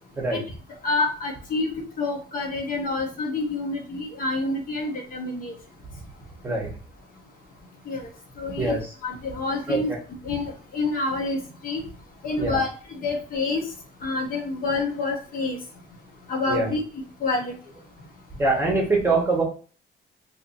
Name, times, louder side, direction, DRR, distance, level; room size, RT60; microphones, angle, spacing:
voice 1, 0.8-1.7 2.0-5.5 7.9-8.0 8.4-8.8 9.0-9.9 10.2-11.4 11.6-11.8 12.2-13.6 14.0-15.6 16.3-16.8 17.2-17.5, left 3 dB, 45° left, 1 dB, 0.8 m, -27 dB
voice 2, 9.7-10.0 12.4-12.6 16.5-16.7 18.4-19.4, right 3 dB, 10° right, -2 dB, 0.9 m, -23 dB
2.8 x 2.6 x 3.9 m, 0.39 s
cardioid pair, 175°, 20 cm